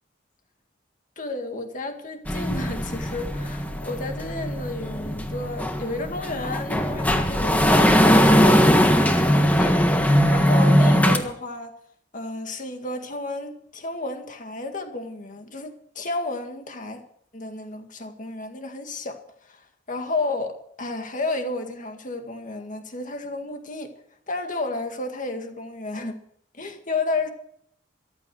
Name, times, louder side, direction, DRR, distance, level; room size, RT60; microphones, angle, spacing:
voice 1, 1.2-11.7 12.1-17.0 17.3-19.2 19.5-19.6 19.9-23.9 24.3-26.2 26.5-27.3, left 2 dB, 45° left, 2.0 m, -32 dB
sound 1, 2.3-11.2, equal, 10° left, 1.5 m, -20 dB
14.0 x 12.5 x 6.2 m
head